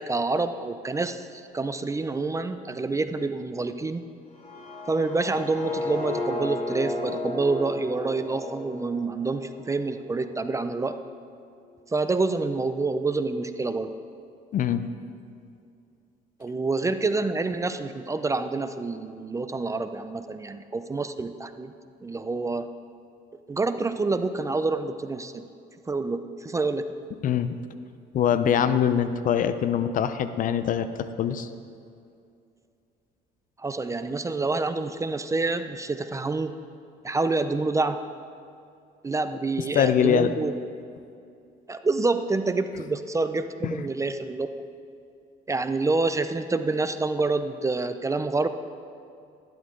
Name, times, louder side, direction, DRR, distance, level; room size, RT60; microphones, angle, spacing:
voice 1, 0.0-4.0 4.9-11.0 11.9-13.9 16.4-21.7 22.0-22.7 23.5-25.5 25.9-26.9 33.6-36.5 37.0-38.0 39.0-40.5 41.7-44.5 45.5-48.5, right 3 dB, 20° right, 10 dB, 0.5 m, -27 dB
sound 1, 4.3-10.2, left 2 dB, 35° left, 2.8 m, -34 dB
voice 2, 14.5-14.9 27.2-27.6 28.1-30.9 31.2-31.5 39.7-40.3 43.6-43.9, left 8 dB, 50° left, 11 dB, 0.6 m, -23 dB
12.5 x 11.5 x 3.8 m, 2.5 s
cardioid pair, 110°, 17 cm